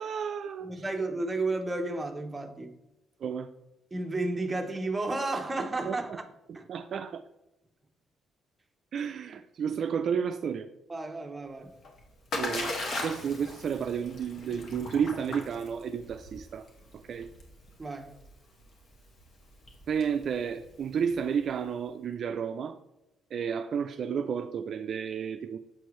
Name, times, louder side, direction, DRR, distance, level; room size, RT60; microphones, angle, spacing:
voice 1, 0.0-0.8 3.2-3.5 5.9-6.2 6.7-7.2 8.9-10.7 12.3-16.7 16.9-17.3 19.9-22.8 23.3-25.6, right 7 dB, 60° right, 0.3 m, -32 dB
voice 2, 0.6-2.8 3.9-6.2 6.5-6.7 9.7-9.8 10.9-11.7 17.8-18.1, right 2 dB, 20° right, 0.8 m, -32 dB
Splash splatter, 11.6-21.5, left 2 dB, 55° left, 1.4 m, -39 dB
7.3 x 4.5 x 3.1 m
cardioid pair, 90°, 0 cm